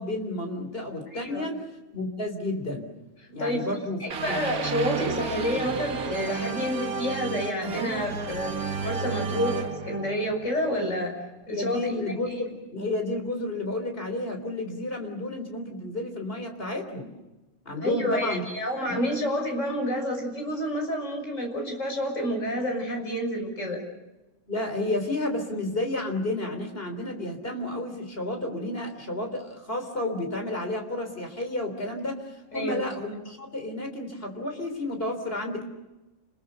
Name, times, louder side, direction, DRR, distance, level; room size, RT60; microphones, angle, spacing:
voice 1, 0.0-1.6 1.9-2.9 3.3-4.0 4.3-4.4 11.5-17.1 17.7-18.4 18.9-19.0 24.5-35.6, left 1 dB, 40° left, 4 dB, 3.9 m, -31 dB
voice 2, 1.1-1.4 3.4-3.6 4.0-11.1 11.5-11.8 17.8-23.8 32.5-32.8, equal, 55° left, 2 dB, 6.7 m, -29 dB
sound 1, 4.1-11.1, right 6 dB, 75° right, 1.7 m, -32 dB
29.5 x 21.5 x 6.9 m, 1.1 s
omnidirectional pair, 1.5 m